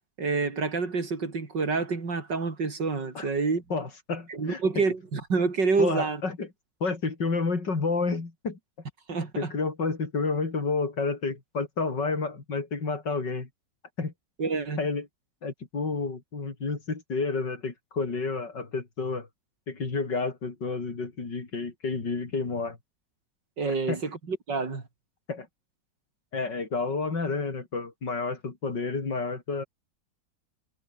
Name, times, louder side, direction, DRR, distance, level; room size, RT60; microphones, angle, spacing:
voice 1, 0.2-3.6 4.3-6.2 9.1-9.5 14.4-14.8 23.6-24.8, right 4 dB, 85° right, 4.2 m, -28 dB
voice 2, 3.7-4.9 5.8-6.5 6.8-8.6 9.4-13.5 14.0-14.1 14.8-15.1 15.4-19.3 19.7-22.8 23.9-24.0 25.3-25.5 26.3-29.6, left 4 dB, 85° left, 4.5 m, -30 dB
omnidirectional pair, 1.9 m